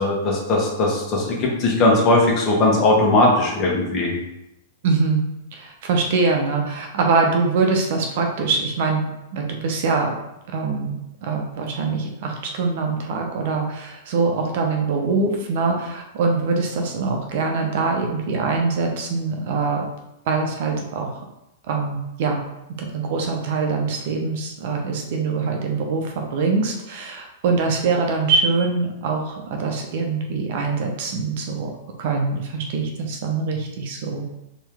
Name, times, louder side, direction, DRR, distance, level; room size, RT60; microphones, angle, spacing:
voice 1, 0.0-4.1, left 2 dB, 35° left, -2 dB, 1.5 m, -19 dB
voice 2, 4.8-5.2 5.5-9.0 9.3-10.1 10.5-10.9 11.2-19.9 20.3-21.2 21.6-22.4 22.8-31.7 32.0-34.2, right 4 dB, 55° right, 2 dB, 0.8 m, -23 dB
4.4 x 3.1 x 3.6 m, 0.88 s
figure-of-eight pair, 100°, 0 cm